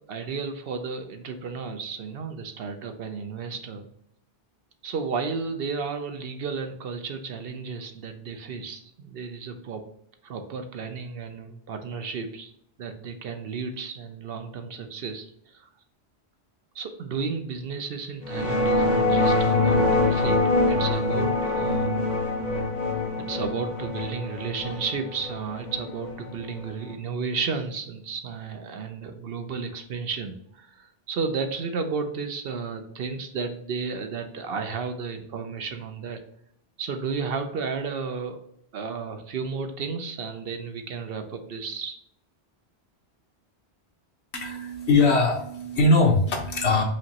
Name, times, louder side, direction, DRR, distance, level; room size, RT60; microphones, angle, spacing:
voice 1, 0.0-3.9 4.8-9.8 10.2-12.5 12.8-15.7 16.7-22.0 23.2-36.2 36.8-38.4 38.7-42.0, right 5 dB, 65° right, 7 dB, 0.8 m, -33 dB
sound 1, 18.2-26.9, left 2 dB, 45° left, 0.7 m, -24 dB
voice 2, 44.3-46.8, left 2 dB, 80° left, 1 dB, 1.3 m, -21 dB
5.1 x 3.0 x 2.8 m, 0.72 s
omnidirectional pair, 1.1 m